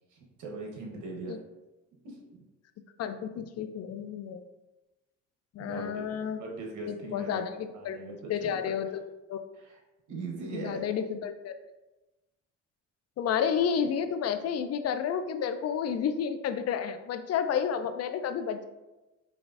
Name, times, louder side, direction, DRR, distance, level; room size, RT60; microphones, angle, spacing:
voice 1, 0.1-1.4 2.0-2.4 5.6-6.0 6.4-7.5 7.7-8.8 9.5-9.8 10.1-10.8, right 3 dB, 75° right, -1 dB, 1.1 m, -40 dB
voice 2, 3.0-4.4 5.5-6.4 6.8-8.0 8.3-9.4 10.5-11.5 13.2-18.7, left 7 dB, 55° left, 9 dB, 0.4 m, -31 dB
4.7 x 3.1 x 2.5 m, 1.1 s
cardioid pair, 90°, 30 cm